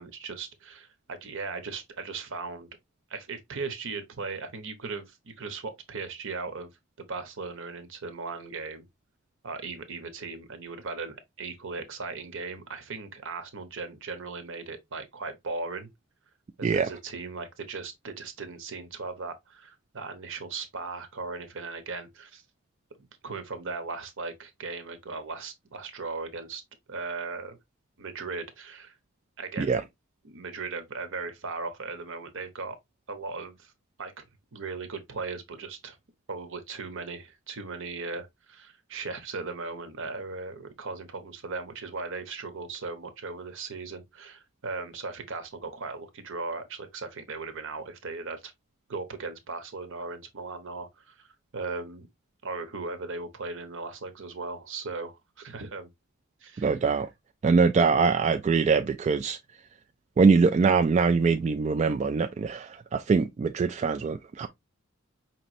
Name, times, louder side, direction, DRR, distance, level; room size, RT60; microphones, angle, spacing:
voice 1, 0.0-2.7 3.1-6.7 7.0-8.8 9.4-15.9 16.6-22.4 23.0-26.6 26.9-27.6 28.0-29.0 29.4-29.8 30.2-32.8 33.1-33.7 34.0-34.2 34.5-36.0 36.3-48.5 48.9-52.1 52.4-55.9 56.4-56.7, right 4 dB, 65° right, 0.9 m, -37 dB
voice 2, 56.6-57.1 57.4-59.4 60.2-64.5, right 5 dB, 30° right, 0.3 m, -23 dB
5.3 x 3.0 x 2.6 m
head